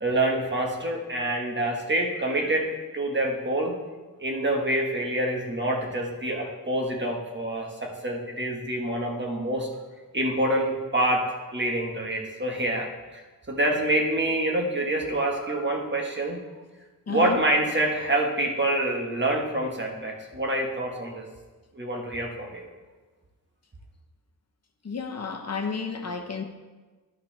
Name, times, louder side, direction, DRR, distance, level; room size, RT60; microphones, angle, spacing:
voice 1, 0.0-3.8 4.2-9.7 10.1-13.2 13.5-16.4 17.1-21.2 21.7-22.7, right 1 dB, 35° right, 0 dB, 1.5 m, -26 dB
voice 2, 17.1-17.4 24.8-26.4, left 5 dB, 50° left, 4 dB, 0.9 m, -31 dB
12.0 x 5.7 x 3.4 m, 1.3 s
cardioid pair, 75°, 35 cm